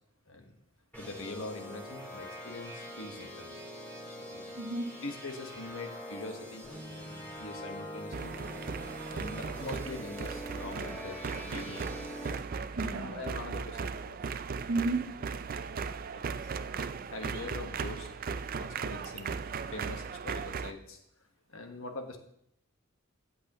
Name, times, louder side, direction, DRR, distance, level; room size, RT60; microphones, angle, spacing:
sound 1, 0.9-12.4, equal, 10° left, 4.6 m, -43 dB
voice 1, 1.0-3.6 4.1-4.6 5.0-8.3 9.1-11.9 12.9-14.2 16.2-16.5 17.1-18.1 18.6-19.3 19.7-21.0 21.5-22.2, left 2 dB, 75° left, 5 dB, 1.4 m, -43 dB
voice 2, 4.6-5.0 12.8-13.2 14.7-15.3, right 2 dB, 70° right, 6 dB, 1.0 m, -33 dB
sound 2, 8.1-20.7, right 5 dB, 40° right, 0.4 m, -37 dB
14.0 x 8.4 x 3.0 m, 0.75 s
head